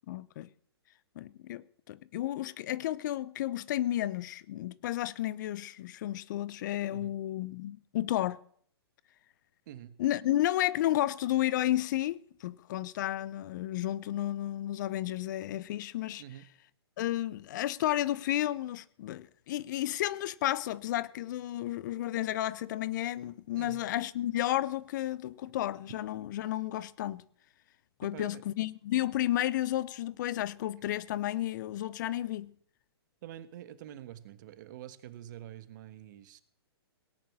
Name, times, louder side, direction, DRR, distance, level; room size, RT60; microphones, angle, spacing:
voice 1, 0.1-0.5 1.2-8.4 10.0-16.2 17.0-27.2 28.0-32.5, left 14 dB, 45° left, 0.7 m, -32 dB
voice 2, 33.2-36.4, right 12 dB, 45° right, 1.4 m, -46 dB
18.0 x 10.0 x 6.1 m
hypercardioid pair, 125°, 14 cm